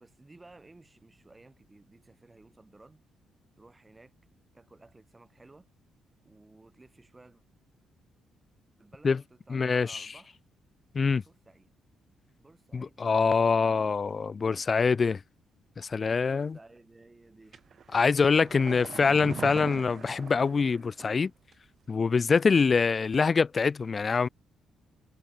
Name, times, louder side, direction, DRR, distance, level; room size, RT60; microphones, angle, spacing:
voice 1, 0.0-3.0 3.6-4.1 4.5-5.7 6.2-7.4 8.8-10.4 11.2-11.7 12.4-14.0 16.2-17.6 18.3-18.7, right 2 dB, 20° right, 6.9 m, -55 dB
voice 2, 9.5-10.1 10.9-11.2 12.7-15.2 15.8-16.6 17.9-21.3 21.9-24.3, left 5 dB, 35° left, 0.8 m, -25 dB
sound 1, 17.5-21.2 21.5-21.6, right 7 dB, 50° right, 3.0 m, -41 dB
cardioid pair, 90°, 0 cm